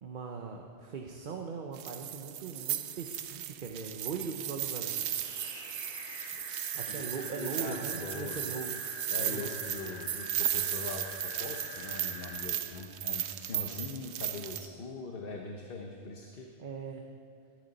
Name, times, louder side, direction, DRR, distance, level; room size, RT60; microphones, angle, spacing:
voice 1, 0.0-5.6 6.3-6.4 6.7-8.7 9.2-9.6 16.6-17.1, right 5 dB, 50° right, 2 dB, 0.9 m, -40 dB
sound 1, 1.7-14.7, right 11 dB, 80° right, 0.9 m, -36 dB
sound 2, 4.7-12.4, left 1 dB, 90° left, 3.3 m, -45 dB
voice 2, 7.3-8.4 9.1-16.5, left 3 dB, 55° left, 2 dB, 1.1 m, -41 dB
19.5 x 11.5 x 4.1 m, 2.4 s
omnidirectional pair, 1.1 m